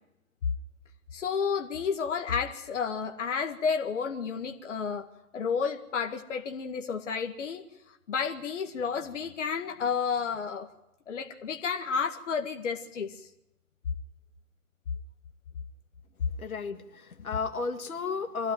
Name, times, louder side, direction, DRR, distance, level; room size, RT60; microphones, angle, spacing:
voice 1, 1.1-5.1 5.3-7.6 8.1-10.7 11.1-13.3 17.3-17.4, left 6 dB, 55° left, 5 dB, 2.0 m, -31 dB
voice 2, 16.4-18.5, left 5 dB, 70° left, 6 dB, 2.0 m, -33 dB
25.0 x 15.5 x 9.3 m, 0.89 s
figure-of-eight pair, 135°, 43 cm